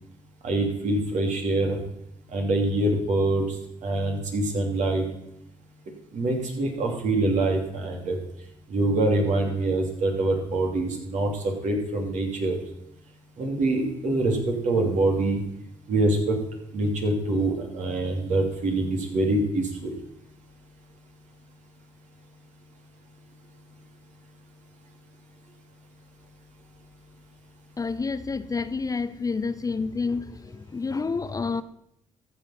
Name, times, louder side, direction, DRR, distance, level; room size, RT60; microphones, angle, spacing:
voice 1, 0.4-1.8 2.3-3.6 3.8-5.0 6.1-8.2 8.7-11.3 11.6-12.6 13.4-15.4 15.9-16.4 16.7-19.9, right 2 dB, 65° right, 2.9 m, -25 dB
voice 2, 27.8-31.6, left 4 dB, 25° left, 0.6 m, -29 dB
14.0 x 6.8 x 5.8 m
supercardioid pair, 65°, 13 cm